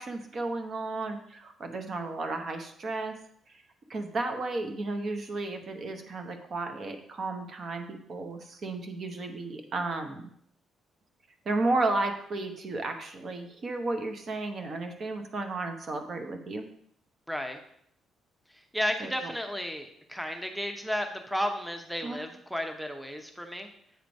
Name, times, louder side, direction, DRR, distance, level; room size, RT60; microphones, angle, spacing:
voice 1, 0.0-3.1 3.5-3.6 3.9-10.2 11.4-16.7 19.0-19.3 22.0-22.2, right 2 dB, 50° right, 5 dB, 0.9 m, -33 dB
voice 2, 17.3-17.6 18.5-23.7, equal, ahead, 5 dB, 0.7 m, -33 dB
8.1 x 3.2 x 5.2 m, 0.69 s
cardioid pair, 90°, 0 cm